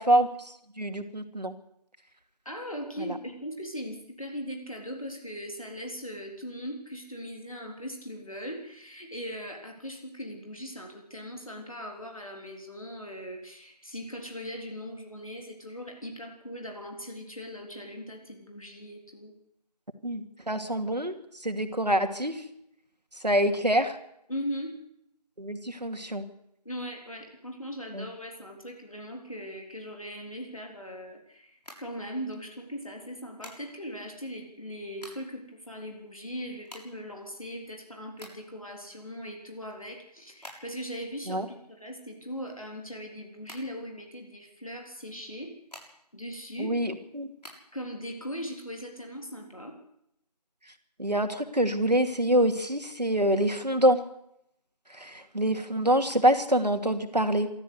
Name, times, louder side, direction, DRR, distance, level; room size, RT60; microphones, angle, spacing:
voice 1, 0.0-1.5 3.1-3.2 20.0-21.1 21.4-22.4 23.2-24.0 25.4-26.2 27.9-28.1 41.3-41.5 46.6-47.3 51.0-54.0 54.9-57.5, right 1 dB, 80° right, 7 dB, 2.6 m, -26 dB
voice 2, 2.5-19.3 24.3-24.7 26.7-45.5 46.1-46.8 47.7-49.8, equal, 55° left, 2 dB, 3.7 m, -39 dB
sound 1, 31.5-32.5 33.4-34.0 34.6-35.4 35.7-35.8 36.0-38.7 39.1-41.0 41.2-43.1 43.4-44.4 45.2-46.2 46.6-47.6, equal, 75° left, 7.0 m, -49 dB
23.0 x 13.5 x 8.2 m, 0.76 s
figure-of-eight pair, 180°, 21 cm